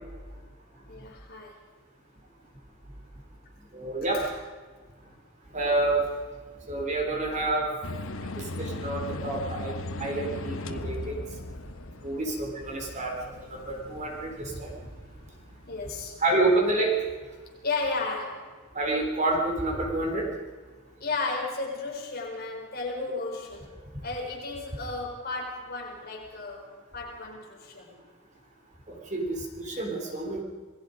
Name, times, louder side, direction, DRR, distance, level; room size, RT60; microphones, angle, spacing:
voice 1, 0.9-1.6 4.1-4.3 12.2-12.3 15.0-15.3 15.6-16.2 17.6-18.5 21.0-23.8 24.0-27.9, left 3 dB, 45° left, -1 dB, 4.5 m, -34 dB
voice 2, 3.7-4.2 5.5-6.0 6.7-7.7 8.3-11.2 12.0-13.1 13.5-14.7 16.2-17.0 18.8-20.3 28.9-30.4, right 2 dB, 35° right, 0 dB, 3.6 m, -28 dB
sound 1, 7.8-15.9, left 2 dB, 65° left, 1.3 m, -38 dB
27.5 x 19.5 x 5.2 m, 1.5 s
head